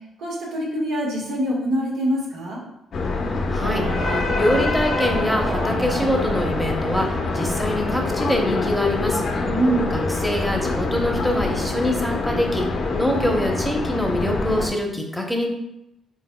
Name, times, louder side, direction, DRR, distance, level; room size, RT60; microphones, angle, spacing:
voice 1, 0.2-2.6 9.5-9.9, right 1 dB, 85° right, -4 dB, 1.4 m, -24 dB
sound 1, 2.9-14.7, left 3 dB, 55° left, 0.6 m, -25 dB
voice 2, 3.5-9.2 9.9-12.6 13.0-15.5, left 1 dB, ahead, 1 dB, 0.8 m, -24 dB
sound 2, 3.6-14.0, right 5 dB, 70° right, 0.4 m, -36 dB
4.4 x 3.9 x 2.2 m, 0.84 s
cardioid pair, 90°, 0 cm